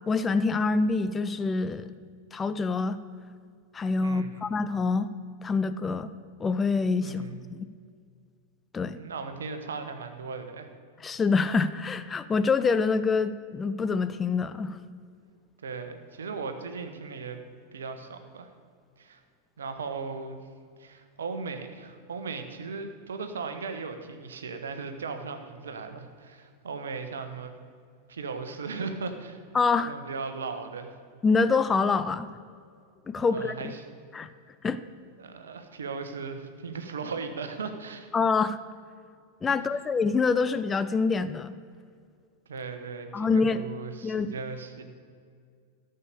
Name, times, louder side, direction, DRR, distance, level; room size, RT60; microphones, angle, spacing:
voice 1, 0.1-1.9 2.3-3.0 3.7-5.1 5.4-6.1 6.4-7.2 7.5-7.7 8.7-9.0 11.0-14.8 29.5-29.9 31.2-32.3 33.1-33.5 34.1-34.3 34.6-34.8 38.1-38.6 39.4-41.5 43.1-43.6 44.0-44.3, left 4 dB, 15° left, 12 dB, 0.5 m, -26 dB
voice 2, 4.0-4.5 7.0-7.4 9.0-10.7 15.6-17.4 17.7-18.5 19.0-19.2 19.6-20.4 20.8-27.5 28.1-29.4 29.9-31.0 33.1-33.9 35.2-38.1 39.5-39.7 42.5-44.8, right 4 dB, 65° right, 7 dB, 1.1 m, -37 dB
14.0 x 6.7 x 6.8 m, 2.2 s
figure-of-eight pair, 90°, 0 cm